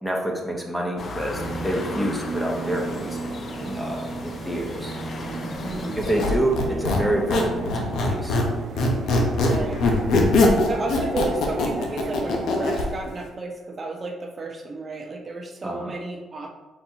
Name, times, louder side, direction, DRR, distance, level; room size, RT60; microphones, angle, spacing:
voice 1, 0.0-4.9 6.0-8.4 15.6-15.9, right 1 dB, 5° left, -1 dB, 0.8 m, -27 dB
sound 1, 1.0-6.4, left 3 dB, 50° left, 0.5 m, -36 dB
sound 2, 1.3-12.9, right 4 dB, 60° right, 0.3 m, -35 dB
voice 2, 5.6-6.1 6.6-6.9 9.4-9.8 10.4-16.5, right 2 dB, 35° right, 2 dB, 0.8 m, -32 dB
Squeak, 6.0-8.5 8.8-12.9, left 2 dB, 80° left, 0.8 m, -21 dB
4.5 x 4.1 x 2.9 m, 1.2 s
cardioid pair, 90°, 0 cm